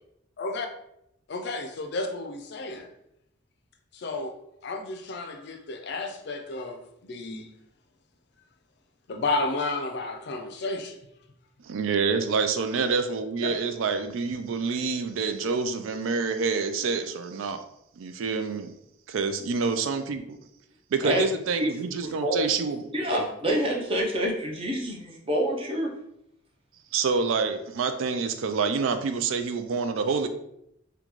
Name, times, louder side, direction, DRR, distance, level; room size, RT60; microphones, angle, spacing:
voice 1, 0.4-0.7 1.3-2.9 3.9-4.3 4.6-7.5 9.1-11.0 13.4-13.5, left 3 dB, 55° left, 6 dB, 0.4 m, -32 dB
voice 2, 11.6-17.6 18.0-18.7 19.1-20.4 20.9-22.8 26.9-30.3, right 5 dB, 75° right, 8 dB, 0.4 m, -27 dB
voice 3, 22.0-22.5 22.9-25.9, equal, 25° right, -1 dB, 0.6 m, -27 dB
3.8 x 2.2 x 3.0 m, 0.77 s
head